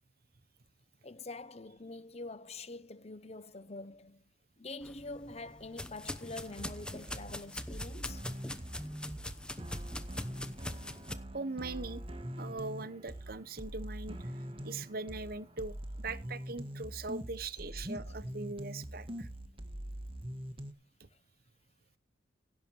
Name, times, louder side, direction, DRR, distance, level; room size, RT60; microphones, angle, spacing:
voice 1, 1.0-4.2 4.6-8.2, left 2 dB, 35° left, 1.0 m, -45 dB
sound 1, 4.8-11.1, left 1 dB, 5° left, 0.9 m, -43 dB
sound 2, 6.5-20.7, equal, 30° right, 1.5 m, -43 dB
voice 2, 11.3-12.0 12.4-14.2 14.6-19.3 21.0-21.1, right 3 dB, 50° right, 1.0 m, -41 dB
16.5 x 7.3 x 4.6 m
head